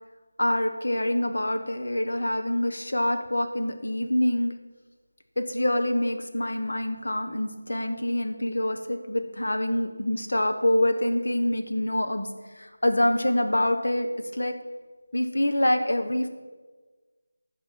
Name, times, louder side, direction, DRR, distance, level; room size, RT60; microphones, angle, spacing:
voice 1, 0.4-4.5 5.4-12.3 12.6-14.1 14.3-14.5 15.1-16.3, left 1 dB, 70° left, 6 dB, 1.2 m, -26 dB
14.5 x 5.4 x 5.9 m, 1.3 s
figure-of-eight pair, 180°, 0 cm